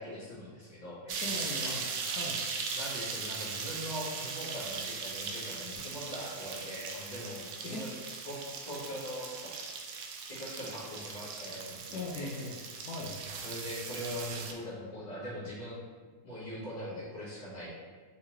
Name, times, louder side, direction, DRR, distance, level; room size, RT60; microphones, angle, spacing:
voice 1, 0.0-2.0 2.7-8.0 8.2-9.5 10.2-12.3 13.3-15.8 16.2-17.8, equal, 30° left, -8 dB, 1.3 m, -41 dB
sound 1, 1.1-14.5, right 5 dB, 75° right, 1.0 m, -39 dB
voice 2, 1.2-2.4 7.6-7.9 11.9-13.2, left 2 dB, 80° left, -1 dB, 1.2 m, -40 dB
4.2 x 3.6 x 3.0 m, 1.5 s
omnidirectional pair, 1.7 m